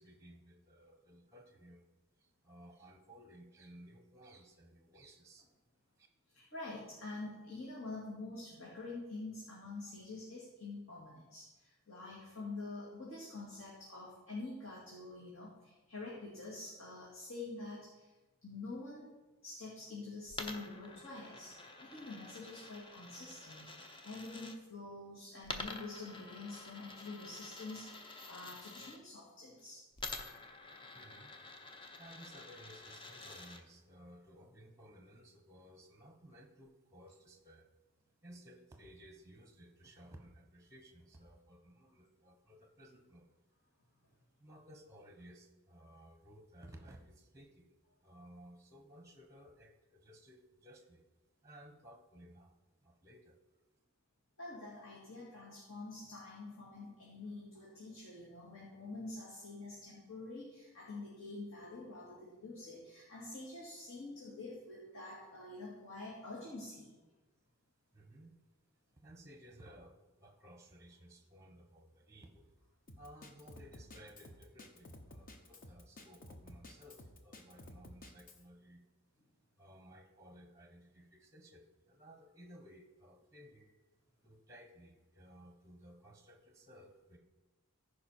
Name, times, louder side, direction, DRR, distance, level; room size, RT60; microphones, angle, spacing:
voice 1, 0.0-1.9 2.2-5.5 6.0-6.1 30.9-31.3 32.0-37.7 38.2-43.4 44.4-47.7 48.0-51.0 51.4-52.5 52.8-53.4 67.9-68.3 68.9-72.5 73.0-78.8 79.6-83.7 84.2-87.2, equal, 15° right, 4 dB, 1.0 m, -57 dB
voice 2, 6.3-18.1 18.4-19.1 19.4-23.7 24.0-29.8 30.2-30.3 54.4-66.9, left 2 dB, 60° left, -6 dB, 2.2 m, -47 dB
Coin (dropping), 20.3-24.6 25.4-29.0 30.0-33.6, left 3 dB, 20° left, 0.6 m, -48 dB
Drum kit, 72.9-78.4, left 1 dB, 40° left, 0.9 m, -54 dB
15.0 x 5.0 x 4.3 m, 1.1 s
head